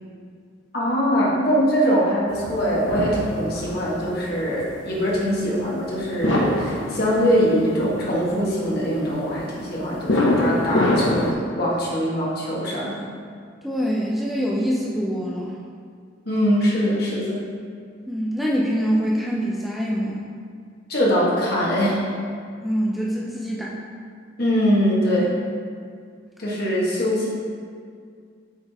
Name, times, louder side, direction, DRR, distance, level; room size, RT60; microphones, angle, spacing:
voice 1, 0.7-11.2 11.5-13.0 16.2-17.4 20.9-22.0 24.4-25.3 26.4-27.3, equal, 55° left, -5 dB, 1.5 m, -22 dB
sound 1, 2.3-11.3, left 1 dB, 80° left, 0.9 m, -25 dB
voice 2, 13.6-15.5 18.1-20.2 22.6-23.8, equal, ahead, -5 dB, 0.5 m, -24 dB
8.0 x 3.8 x 3.5 m, 2.1 s
head